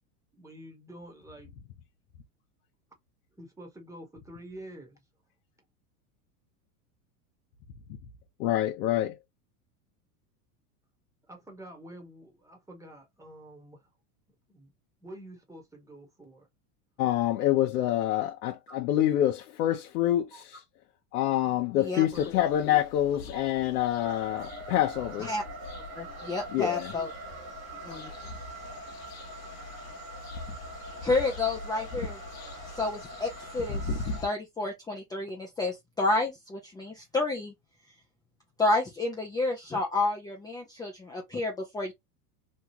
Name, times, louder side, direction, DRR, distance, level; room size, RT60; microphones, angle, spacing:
voice 1, 0.3-1.5 3.4-5.0 11.3-13.8 14.5-14.7 15.0-16.5 18.7-18.8 20.3-20.4 22.1-22.7 23.3-23.4 24.6-24.8 26.9-27.1 27.9-28.0, right 1 dB, 5° right, 1.2 m, -48 dB
voice 2, 8.4-9.2 17.0-20.6 21.1-25.3 26.5-26.9, left 12 dB, 75° left, 0.8 m, -26 dB
sound 1, 22.1-34.3, left 3 dB, 35° left, 1.1 m, -41 dB
sound 2, 24.0-34.2, right 2 dB, 65° right, 1.4 m, -44 dB
voice 3, 25.9-27.1 27.8-28.1 31.0-32.2 32.7-37.5 38.6-41.9, left 2 dB, 10° left, 0.6 m, -30 dB
3.2 x 2.3 x 2.8 m
supercardioid pair, 130°, 45 cm